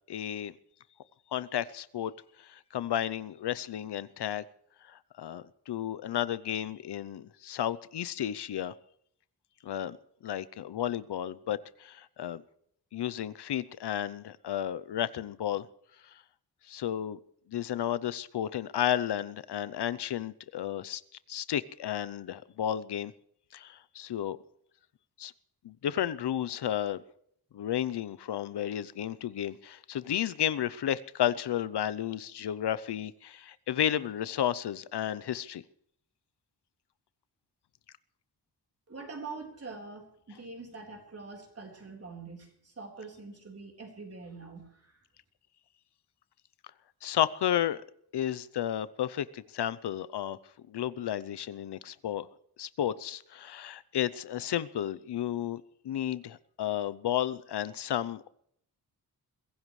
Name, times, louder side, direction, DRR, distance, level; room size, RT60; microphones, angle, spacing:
voice 1, 0.1-0.5 1.3-2.1 2.4-4.4 4.9-8.7 9.6-10.0 10.2-12.4 12.9-15.7 16.0-16.2 16.7-17.2 17.5-21.0 21.3-23.1 23.5-24.4 25.2-25.3 25.6-27.0 27.5-35.6 47.0-47.8 48.1-50.4 50.7-52.3 52.6-58.3, left 11 dB, 85° left, 17 dB, 0.7 m, -32 dB
voice 2, 38.9-45.0, right 4 dB, 35° right, 1 dB, 4.1 m, -44 dB
23.0 x 16.0 x 3.2 m, 0.68 s
wide cardioid pair, 145°, 40 cm